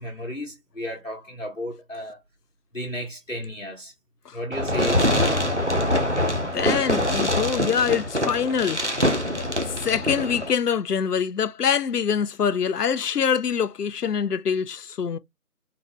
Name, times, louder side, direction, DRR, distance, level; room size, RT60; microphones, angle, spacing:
voice 1, 0.0-2.2 2.7-3.9 4.3-5.4, equal, 55° left, 1.0 m, -33 dB
Fireworks, 4.5-10.5, left 1 dB, 50° right, 0.5 m, -24 dB
voice 2, 6.1-8.8 9.7-15.2, left 7 dB, 80° left, 0.5 m, -25 dB
3.8 x 2.3 x 2.9 m
figure-of-eight pair, 180°, 46 cm